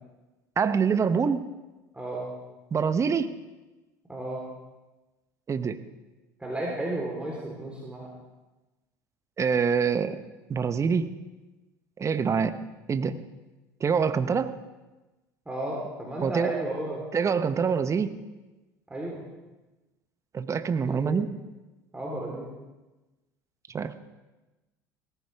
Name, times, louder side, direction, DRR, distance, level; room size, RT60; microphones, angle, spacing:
voice 1, 0.6-1.5 2.7-3.3 5.5-5.8 9.4-10.2 10.5-11.2 12.0-12.6 12.9-13.2 13.8-14.5 16.2-16.5 17.1-18.1 20.3-21.3 23.7-24.0, right 6 dB, 30° right, 11 dB, 1.0 m, -25 dB
voice 2, 1.9-2.3 4.1-4.4 6.4-8.1 15.5-17.0 18.9-19.2 20.8-21.2 21.9-22.5, right 1 dB, 10° right, -4 dB, 3.7 m, -33 dB
17.5 x 15.0 x 3.5 m, 1.1 s
hypercardioid pair, 70°, 10 cm